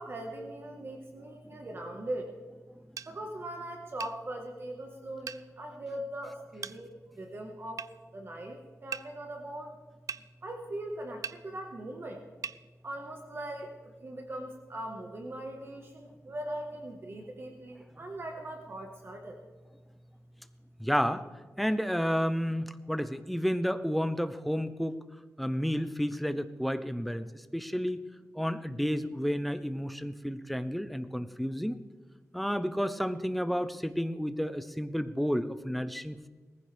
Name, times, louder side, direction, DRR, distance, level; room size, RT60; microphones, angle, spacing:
voice 1, 0.0-2.3 3.0-9.8 10.4-12.2 12.8-19.4, right 1 dB, 45° right, 2 dB, 1.5 m, -40 dB
sound 1, 3.0-3.1 4.0-4.2 5.3-5.4 6.6-6.8 7.8-7.9 8.9-9.1 10.1-10.2 11.2-11.4 12.4-12.6, right 7 dB, 80° right, 0.4 m, -38 dB
voice 2, 20.8-21.2 21.6-25.0 25.4-27.3 27.5-28.0 28.3-31.8 32.3-36.3, equal, ahead, 11 dB, 0.6 m, -31 dB
19.0 x 15.0 x 3.5 m, 1.3 s
wide cardioid pair, 135°, 6 cm